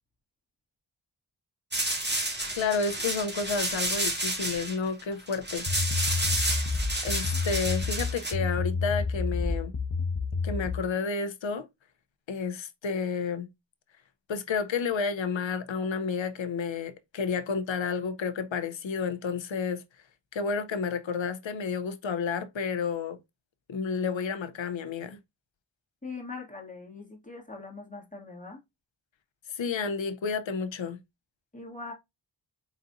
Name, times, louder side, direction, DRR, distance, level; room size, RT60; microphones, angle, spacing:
sound 1, 1.7-8.3, right 1 dB, 25° right, 1.6 m, -30 dB
voice 1, 2.6-5.7 7.0-9.7 10.4-11.7 12.3-13.5 14.3-19.8 20.3-23.2 23.7-25.2 29.5-31.0, left 5 dB, 80° left, 0.7 m, -31 dB
sound 2, 5.7-10.9, left 4 dB, 40° left, 0.8 m, -29 dB
voice 2, 26.0-28.6 31.5-31.9, left 3 dB, 15° left, 2.0 m, -41 dB
4.0 x 4.0 x 2.5 m
wide cardioid pair, 40°, 45 cm